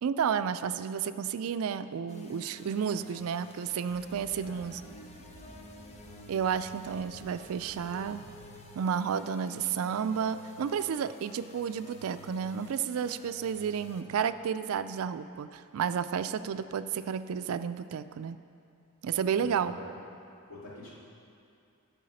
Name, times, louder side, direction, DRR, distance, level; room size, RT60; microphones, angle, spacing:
voice 1, 0.0-4.8 6.3-8.3 8.7-18.4 19.0-19.7, right 7 dB, 75° right, 13 dB, 0.3 m, -31 dB
sound 1, 2.1-14.0, left 1 dB, 30° left, 0.7 m, -50 dB
sound 2, 3.9-9.1, equal, 30° right, 1.1 m, -54 dB
voice 2, 19.3-19.9 20.5-20.9, left 2 dB, 70° left, -6 dB, 2.5 m, -46 dB
12.0 x 4.8 x 6.4 m, 2.6 s
head